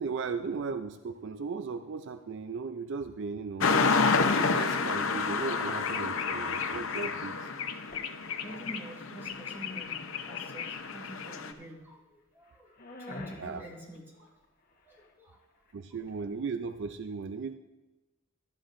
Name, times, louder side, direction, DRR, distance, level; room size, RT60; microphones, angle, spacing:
voice 1, 0.0-3.7 4.4-7.5 13.4-13.6 15.7-17.5, right 5 dB, 60° right, 9 dB, 0.4 m, -36 dB
sound 1, 3.6-11.5, left 4 dB, 65° left, 0.7 m, -29 dB
sound 2, 5.4-6.4 6.7-6.8 7.3-7.4 7.7-8.8 9.3-10.3 10.6-11.2 11.5-11.9 12.3-15.2 15.4-16.3, left 2 dB, 45° left, 1.2 m, -49 dB
voice 2, 7.6-8.0 8.4-12.7 13.0-14.3 14.8-15.4, equal, 10° right, -3 dB, 2.2 m, -47 dB
16.0 x 12.0 x 2.6 m, 1.1 s
head